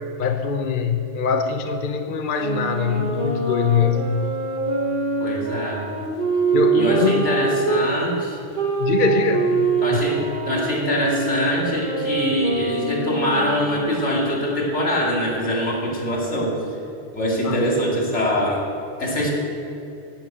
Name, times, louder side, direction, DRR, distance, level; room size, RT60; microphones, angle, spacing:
voice 1, 0.2-4.1 6.5-7.4 8.8-10.3 17.4-17.6, left 6 dB, 50° left, 6 dB, 0.8 m, -23 dB
sound 1, 2.4-7.9 8.5-14.1, right 4 dB, 45° right, 1.6 m, -24 dB
voice 2, 5.2-5.8 6.7-8.4 9.8-16.6 17.1-18.6 19.0-19.3, equal, 75° left, -2 dB, 2.7 m, -23 dB
11.5 x 7.6 x 8.8 m, 2.7 s
omnidirectional pair, 1.2 m